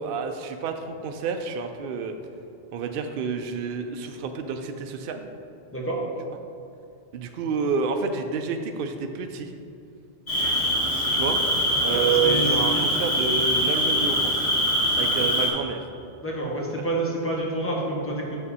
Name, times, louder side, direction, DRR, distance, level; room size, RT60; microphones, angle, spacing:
voice 1, 0.0-2.1 2.7-5.3 7.1-9.5 11.1-11.4 11.8-14.3 15.0-15.8 16.8-16.9, right 5 dB, 65° right, 5 dB, 0.7 m, -29 dB
Cricket, 10.3-15.5, equal, 65° left, 1.9 m, -23 dB
voice 2, 11.8-12.8 16.2-18.4, right 2 dB, 10° left, -3 dB, 1.2 m, -28 dB
7.2 x 6.4 x 4.2 m, 2.5 s
omnidirectional pair, 1.1 m